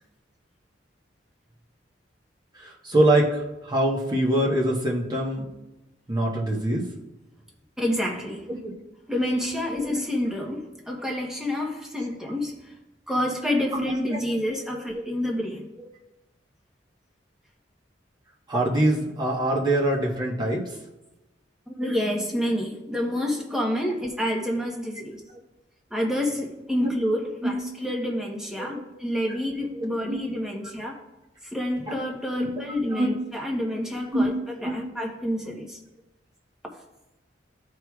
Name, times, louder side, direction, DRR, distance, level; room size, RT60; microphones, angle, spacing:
voice 1, 2.6-5.4 6.1-6.8 8.5-8.7 9.8-10.0 13.7-14.0 14.9-15.1 18.5-20.6 26.8-26.9 27.4-27.6 28.6-28.8 29.7-30.2 32.4-32.6 32.9-33.1 34.1-34.3 34.6-34.8, right 1 dB, 25° right, -2 dB, 1.2 m, -24 dB
voice 2, 7.8-8.5 9.1-12.6 13.1-15.6 21.7-25.2 25.9-31.0 31.5-34.3 34.6-35.8, left 1 dB, 5° right, -1 dB, 1.0 m, -28 dB
13.0 x 4.7 x 2.3 m, 0.98 s
head